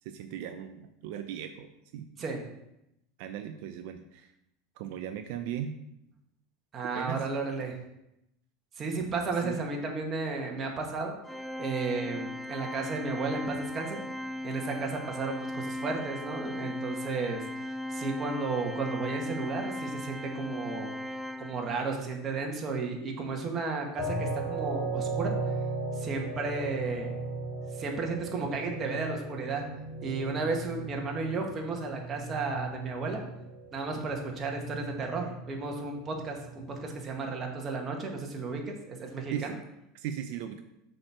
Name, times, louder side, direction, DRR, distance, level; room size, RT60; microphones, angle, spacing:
voice 1, 0.0-2.1 3.2-4.3 4.8-5.7 6.9-7.2 9.4-9.6 39.3-39.5 39.9-40.6, right 9 dB, 70° right, 8 dB, 0.5 m, -37 dB
voice 2, 6.7-7.8 8.8-11.2 11.6-14.0 14.4-17.4 17.9-20.9 21.4-25.3 26.0-27.1 27.7-29.6 30.0-33.2 33.7-39.5, right 4 dB, 35° right, 1 dB, 1.7 m, -33 dB
Organ, 11.3-22.0, left 1 dB, ahead, 0.4 m, -37 dB
sound 1, 24.0-37.0, right 3 dB, 25° left, 3.2 m, -37 dB
6.3 x 4.5 x 6.3 m, 0.83 s
supercardioid pair, 105°, 0 cm